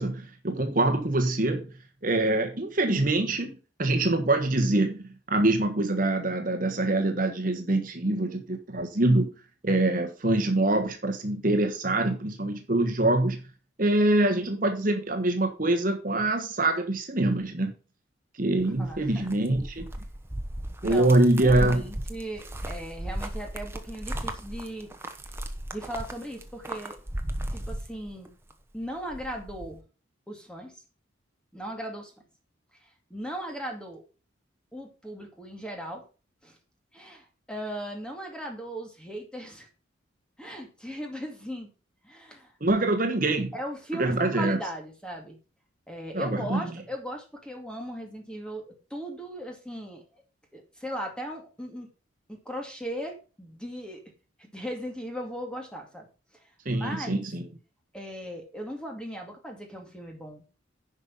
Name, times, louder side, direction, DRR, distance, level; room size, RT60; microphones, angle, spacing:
voice 1, 0.0-1.7 2.0-9.3 9.6-13.4 13.8-17.7 18.3-19.9 20.8-21.8 42.6-43.5 43.9-44.6 46.1-46.6 56.6-57.5, right 2 dB, 40° right, 4 dB, 1.3 m, -24 dB
voice 2, 18.5-19.4 20.8-24.9 25.7-27.0 27.5-28.3 28.7-29.8 30.3-30.8 31.5-32.1 32.8-34.0 34.7-36.0 36.4-36.6 36.9-39.7 40.4-41.7 42.0-42.5 43.5-45.4 45.9-50.0 50.5-51.9 52.3-54.0 54.4-56.1 56.7-57.2 57.9-60.4, equal, 5° left, 2 dB, 2.3 m, -38 dB
sound 1, 18.6-28.5 28.8-29.7, right 1 dB, 10° right, 1.0 m, -36 dB
10.5 x 5.4 x 5.5 m, 0.34 s
head